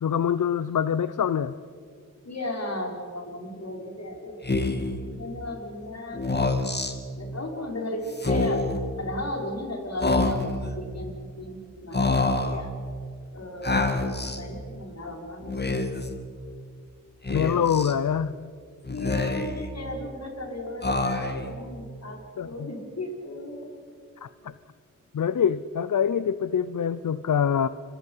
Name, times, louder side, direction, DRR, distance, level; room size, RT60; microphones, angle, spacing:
voice 1, 0.0-1.5 17.3-18.3 22.4-22.5 24.2-24.5 25.1-27.7, left 8 dB, 70° left, 14 dB, 0.7 m, -25 dB
voice 2, 2.2-4.4 4.7-6.5 7.2-8.6 9.0-12.7 13.3-16.2 18.9-23.7, left 1 dB, 50° left, 1 dB, 5.3 m, -36 dB
Speech, 4.4-5.0 6.1-6.9 8.1-8.8 10.0-10.7 11.9-12.6 13.6-14.4 15.4-16.1 17.3-17.9 18.9-19.7 20.8-21.5, left 2 dB, 30° left, 2.4 m, -26 dB
28.0 x 23.5 x 5.7 m, 2.1 s
cardioid pair, 60°, 32 cm